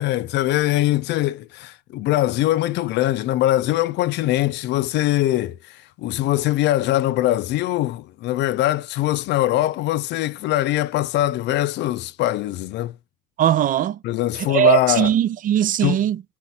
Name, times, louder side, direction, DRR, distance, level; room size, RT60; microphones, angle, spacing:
voice 1, 0.0-12.9 14.0-15.1 15.8-16.0, left 15 dB, 75° left, 0.5 m, -22 dB
voice 2, 13.4-14.0 14.3-16.2, right 10 dB, 50° right, 0.4 m, -19 dB
4.2 x 4.1 x 2.8 m
cardioid pair, 105°, 18 cm